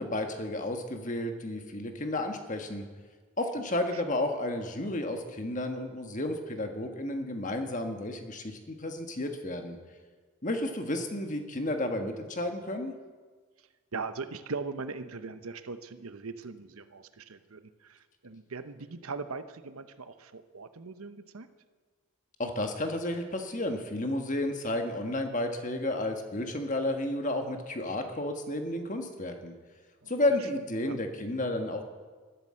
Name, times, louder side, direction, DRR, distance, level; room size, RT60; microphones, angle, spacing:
voice 1, 0.0-2.8 3.4-9.8 10.4-12.9 22.4-29.5 30.1-31.8, left 1 dB, 35° left, 5 dB, 1.5 m, -32 dB
voice 2, 13.9-21.5 30.0-30.1 30.8-31.0, right 4 dB, 90° right, 11 dB, 0.9 m, -40 dB
13.0 x 12.0 x 7.6 m, 1.5 s
head